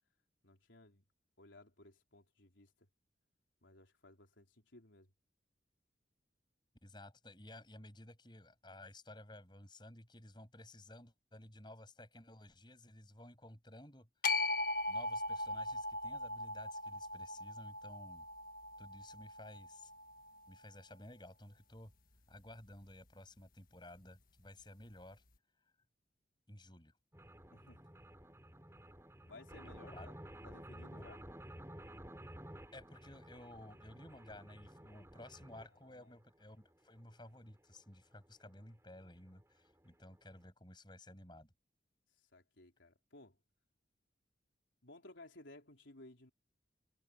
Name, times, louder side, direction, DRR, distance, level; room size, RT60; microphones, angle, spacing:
voice 1, 0.4-1.0 1.4-2.9 3.6-5.1 27.5-27.8 29.2-30.1 30.4-31.2 35.8-36.2 42.2-43.4 44.8-46.3, left 2 dB, 90° left, 4.1 m, -58 dB
voice 2, 6.8-14.1 14.9-18.3 18.8-19.9 20.5-21.9 22.3-25.2 26.5-27.0 29.8-30.1 30.9-31.1 32.7-41.5, left 1 dB, 25° left, 7.2 m, -55 dB
sound 1, 14.2-20.5, left 2 dB, 50° left, 1.6 m, -39 dB
sound 2, 27.1-35.7 36.3-36.4 36.6-36.7 37.0-37.1 37.4-37.5 37.8-37.9 38.6-38.7 38.9-39.0 39.3-39.4 39.7-39.8 40.1-40.2, right 1 dB, 15° right, 7.5 m, -53 dB
head